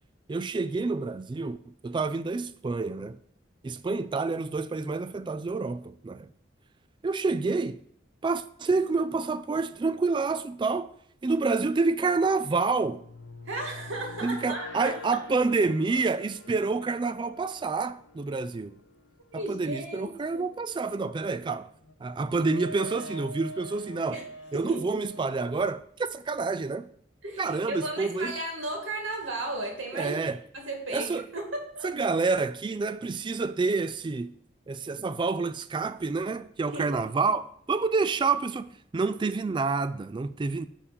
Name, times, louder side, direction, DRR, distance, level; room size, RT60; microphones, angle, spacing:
voice 1, 0.3-3.2 3.6-6.3 7.0-7.8 8.2-10.9 11.2-13.1 14.2-18.8 19.3-21.7 22.0-24.2 24.5-26.9 27.4-28.3 29.9-30.4 30.9-31.3 31.8-34.3 34.7-40.7, right 4 dB, 25° right, 0.3 m, -28 dB
sound 1, 12.4-20.5 21.5-25.5, left 1 dB, 65° left, 0.9 m, -46 dB
voice 2, 13.5-15.0 19.3-20.4 24.1-24.2 24.5-24.9 27.2-30.3 30.5-31.9 36.7-37.0, right 2 dB, 80° right, 2.3 m, -35 dB
9.8 x 3.7 x 6.9 m
head